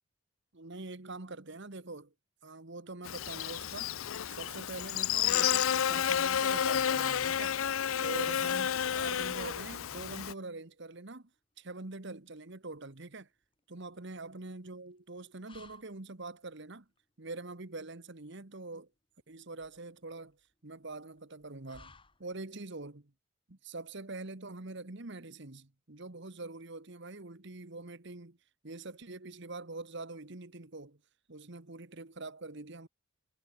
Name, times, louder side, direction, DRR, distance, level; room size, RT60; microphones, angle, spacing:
voice 1, 0.5-2.1 2.4-3.9 4.3-7.6 8.0-11.3 11.6-13.3 13.7-16.8 17.2-18.9 19.3-20.4 20.6-21.9 22.2-23.1 23.5-28.4 28.6-31.0 31.3-32.9, right 2 dB, 55° right, 1.4 m, -44 dB
Buzz, 3.0-10.3, left 9 dB, 70° left, 0.5 m, -31 dB
sound 1, 10.4-22.7, left 4 dB, 25° left, 7.3 m, -65 dB
head